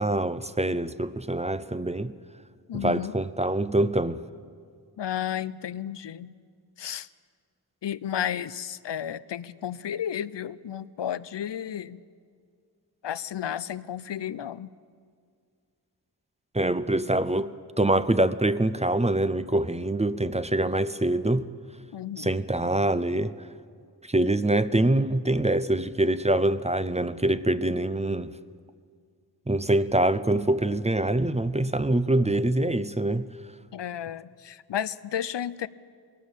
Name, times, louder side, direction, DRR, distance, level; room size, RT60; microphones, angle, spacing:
voice 1, 0.0-2.1 2.7-4.2 16.5-17.5 17.8-21.5 22.2-23.3 24.0-28.3 29.5-33.3, right 1 dB, 15° right, 0.6 m, -24 dB
voice 2, 2.7-3.1 5.0-6.3 6.8-7.1 7.8-12.0 13.0-14.7 21.9-22.3 33.7-35.7, left 10 dB, 90° left, 0.6 m, -32 dB
21.0 x 18.0 x 7.3 m
wide cardioid pair, 70°, 41 cm